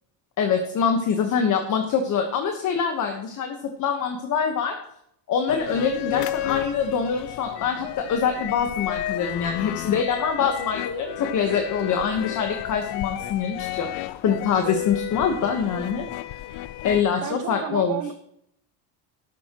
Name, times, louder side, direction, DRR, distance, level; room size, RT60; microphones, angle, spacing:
voice 1, 0.4-4.8 5.3-13.9 14.2-16.1 16.8-18.0, left 6 dB, 45° left, 4 dB, 1.4 m, -24 dB
sound 1, 5.5-17.0, left 14 dB, 65° left, 0.7 m, -32 dB
voice 2, 17.2-18.1, right 10 dB, 45° right, 10 dB, 1.2 m, -32 dB
13.5 x 12.0 x 3.1 m, 0.72 s
cardioid pair, 150°, 43 cm